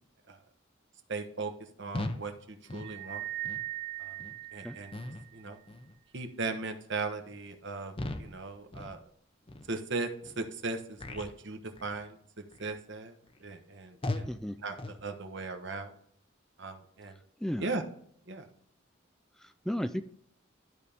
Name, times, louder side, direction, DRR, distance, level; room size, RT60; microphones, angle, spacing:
voice 1, 1.1-1.5 1.8-3.3 4.0-4.2 4.5-4.9 5.3-5.6 6.1-7.9 8.2-9.0 9.7-10.1 10.4-12.2 12.6-14.3 14.6-14.8 15.0-15.9 16.6-17.2 17.6-17.8 18.3-18.5, right 3 dB, 65° right, 6 dB, 1.1 m, -37 dB
sound 1, 1.9-2.3 2.7-2.9 3.4-3.7 4.2-4.4 4.9-5.3 5.7-6.0 6.4-6.7 7.2-7.4 7.9-8.4 8.7-9.0 9.5-9.6 10.2-10.4 11.0-11.4 11.7-12.0 12.5-12.8 13.3-13.4 14.0-14.4 14.8-15.0, left 2 dB, 30° left, 0.7 m, -38 dB
sound 2, 2.8-5.4, right 15 dB, 30° right, 0.9 m, -40 dB
voice 2, 14.3-14.6 17.4-17.7 19.4-20.0, equal, 5° left, 9 dB, 0.3 m, -34 dB
12.5 x 4.2 x 3.5 m, 0.65 s
head